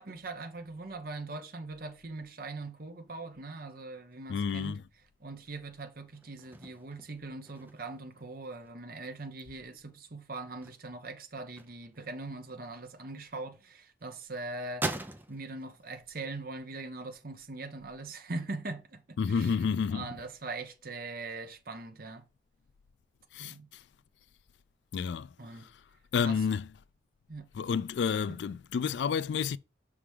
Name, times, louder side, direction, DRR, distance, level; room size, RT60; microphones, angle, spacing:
voice 1, 0.0-4.8 5.2-14.9 15.3-22.2 23.4-23.7 25.4-25.7 26.2-26.4 27.3-27.5, right 3 dB, 50° right, 1.0 m, -41 dB
sound 1, 4.1-13.5 13.9-16.4 16.7-18.2, right 2 dB, 10° right, 0.6 m, -43 dB
voice 2, 4.3-4.8 19.2-20.1 23.3-23.5 24.9-25.7 26.1-26.7 27.5-29.6, left 6 dB, 70° left, 0.3 m, -30 dB
5.9 x 3.6 x 4.8 m
head